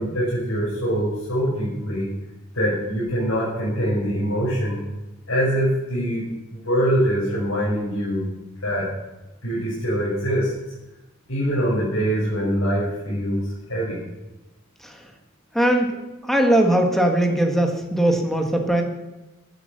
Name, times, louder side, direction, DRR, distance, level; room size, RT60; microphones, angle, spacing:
voice 1, 0.0-2.1 2.5-4.8 5.3-6.2 6.5-8.3 8.6-8.9 9.4-10.5 11.3-14.0, equal, 90° left, -8 dB, 6.7 m, -23 dB
voice 2, 15.5-18.8, right 1 dB, ahead, 3 dB, 1.8 m, -20 dB
16.0 x 10.5 x 6.8 m, 1.0 s
head